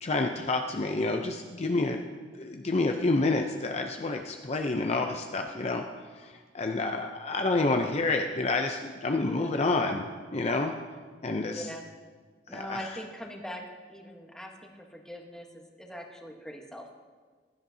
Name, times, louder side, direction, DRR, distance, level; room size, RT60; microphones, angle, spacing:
voice 1, 0.0-2.0 2.4-5.8 6.2-10.7 11.2-11.6 12.5-12.8, left 3 dB, 40° left, 4 dB, 0.6 m, -28 dB
voice 2, 11.4-11.8 12.5-13.6 13.9-16.9, equal, 5° left, 1 dB, 1.2 m, -42 dB
15.5 x 12.0 x 2.8 m, 1.5 s
head